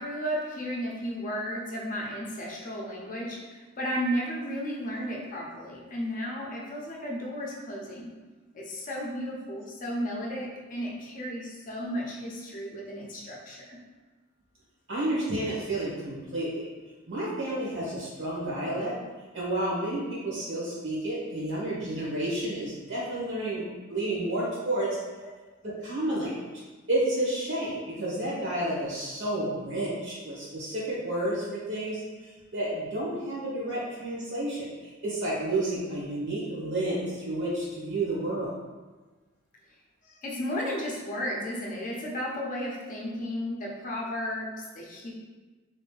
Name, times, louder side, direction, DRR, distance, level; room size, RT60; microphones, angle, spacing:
voice 1, 0.0-8.1 8.5-13.8 40.0-45.1, equal, 40° left, -2 dB, 0.6 m, -34 dB
voice 2, 14.9-16.6 17.1-18.9 19.3-23.6 23.9-25.0 25.6-26.4 26.9-32.0 32.5-34.7 35.0-38.5, right 1 dB, 65° right, -7 dB, 1.3 m, -30 dB
3.1 x 2.6 x 3.2 m, 1.3 s
head